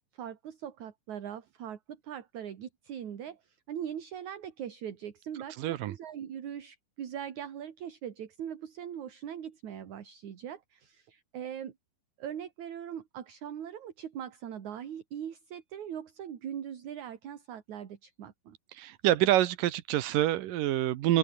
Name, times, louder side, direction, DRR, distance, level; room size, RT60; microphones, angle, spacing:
voice 1, 0.0-11.7 12.2-18.6, right 9 dB, 55° right, 3.3 m, -41 dB
voice 2, 5.6-5.9 18.7-21.2, right 14 dB, 70° right, 2.5 m, -26 dB
open air
omnidirectional pair, 4.2 m